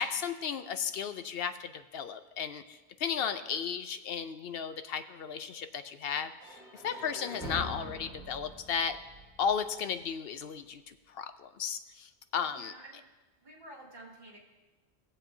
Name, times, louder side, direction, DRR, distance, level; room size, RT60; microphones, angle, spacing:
voice 1, 0.0-9.0 9.4-12.7, left 7 dB, 65° left, 9 dB, 0.8 m, -35 dB
sound 1, 6.4-10.3, equal, 5° right, 2.2 m, -44 dB
voice 2, 6.8-7.2 12.5-13.1 13.4-14.4, right 1 dB, 55° right, -2 dB, 2.4 m, -51 dB
19.0 x 7.6 x 2.7 m, 1.2 s
omnidirectional pair, 1.2 m